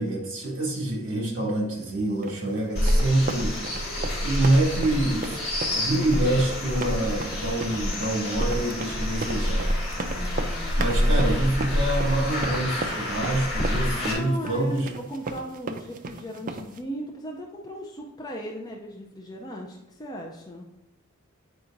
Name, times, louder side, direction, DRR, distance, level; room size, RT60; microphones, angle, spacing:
voice 1, 0.0-3.6 4.2-9.7 10.8-14.9, right 1 dB, 55° right, -2 dB, 1.9 m, -26 dB
sound 1, 2.2-16.8, right 3 dB, 40° right, 0.4 m, -36 dB
sound 2, 2.8-14.1, left 1 dB, 50° left, 2.0 m, -27 dB
voice 2, 10.1-11.4 14.0-20.7, equal, 20° left, -1 dB, 0.4 m, -38 dB
8.2 x 4.8 x 2.5 m, 0.91 s
head